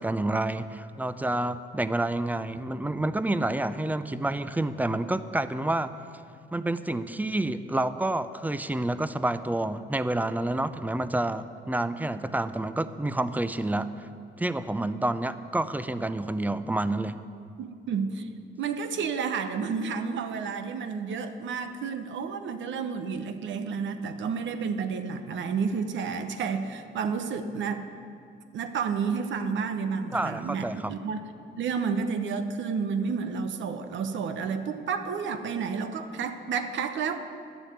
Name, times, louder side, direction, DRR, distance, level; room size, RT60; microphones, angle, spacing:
voice 1, 0.0-5.9 6.5-14.1 14.4-17.2 30.1-30.9, right 2 dB, 10° right, 13 dB, 0.5 m, -29 dB
voice 2, 17.6-18.3 18.6-27.9 28.5-31.2 31.6-37.2, right 5 dB, 70° right, 8 dB, 1.0 m, -31 dB
11.5 x 7.0 x 9.3 m, 2.4 s
cardioid pair, 90°, 20 cm